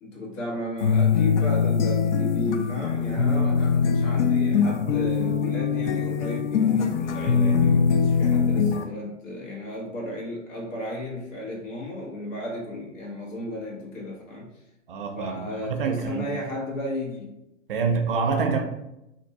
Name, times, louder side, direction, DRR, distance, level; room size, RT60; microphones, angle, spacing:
voice 1, 0.0-14.5 15.1-17.3, left 1 dB, 80° left, -2 dB, 1.4 m, -34 dB
sound 1, 0.8-8.8, left 6 dB, 65° left, 0.5 m, -22 dB
voice 2, 14.9-16.3 17.7-18.6, right 5 dB, 45° right, 4 dB, 0.5 m, -26 dB
2.6 x 2.6 x 4.0 m, 0.89 s
hypercardioid pair, 170°, 38 cm